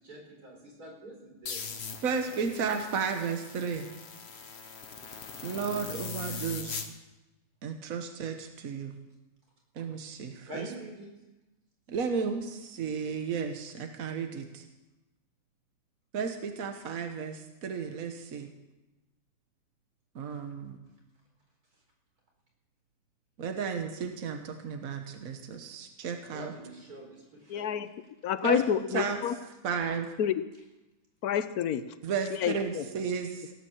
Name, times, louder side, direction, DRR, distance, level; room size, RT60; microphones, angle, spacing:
voice 1, 0.0-1.6 2.3-2.5 10.5-11.1 26.2-27.7, right 1 dB, 85° right, 0 dB, 4.9 m, -45 dB
sound 1, 1.5-6.9, left 5 dB, 45° left, 1.3 m, -41 dB
voice 2, 2.0-3.9 5.4-6.9 7.6-8.9 9.8-10.6 11.9-14.6 16.1-18.5 20.1-20.8 23.4-26.5 28.4-28.6 28.9-29.2 29.6-30.1 32.0-33.5, right 6 dB, 65° right, 5 dB, 1.6 m, -33 dB
voice 3, 27.5-27.9 28.2-29.4 30.2-30.4 31.2-31.9 32.3-32.9, left 9 dB, 85° left, 13 dB, 1.3 m, -29 dB
17.5 x 9.6 x 7.2 m, 1.0 s
omnidirectional pair, 1.6 m